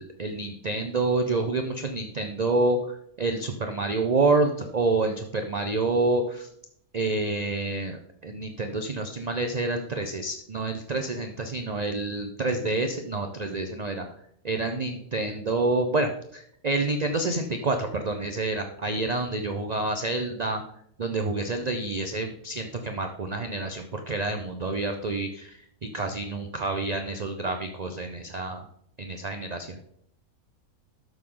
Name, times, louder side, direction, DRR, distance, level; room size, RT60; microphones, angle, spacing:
voice 1, 0.0-6.5 6.9-14.0 14.4-20.6 21.0-25.6 25.9-28.6 29.0-29.8, right 2 dB, 40° right, 5 dB, 0.6 m, -28 dB
12.5 x 6.6 x 3.8 m, 0.70 s
omnidirectional pair, 1.6 m